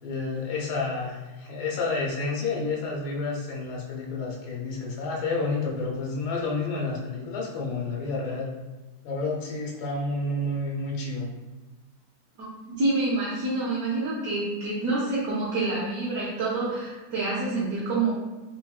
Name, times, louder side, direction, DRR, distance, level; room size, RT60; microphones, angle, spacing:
voice 1, 0.0-8.5 9.0-11.3, left 3 dB, 80° left, -2 dB, 1.2 m, -30 dB
voice 2, 12.4-18.1, right 2 dB, 65° right, -8 dB, 1.1 m, -27 dB
4.4 x 2.1 x 2.3 m, 1.2 s
omnidirectional pair, 1.7 m